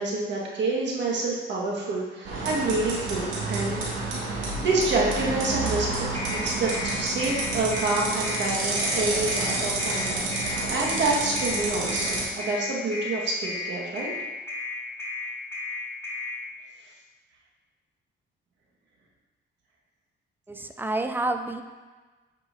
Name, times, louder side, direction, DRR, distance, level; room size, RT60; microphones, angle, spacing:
voice 1, 0.0-3.8 4.2-4.3 4.6-5.9 6.3-14.1, right 2 dB, 65° right, -3 dB, 1.5 m, -28 dB
sound 1, 2.2-12.2, right 3 dB, 85° right, 2.0 m, -29 dB
sound 2, 6.1-16.3, left 3 dB, 10° left, 1.6 m, -33 dB
voice 2, 20.5-21.6, right 2 dB, 10° right, 7 dB, 0.5 m, -29 dB
7.8 x 5.5 x 2.6 m, 1.3 s
cardioid pair, 90°, 20 cm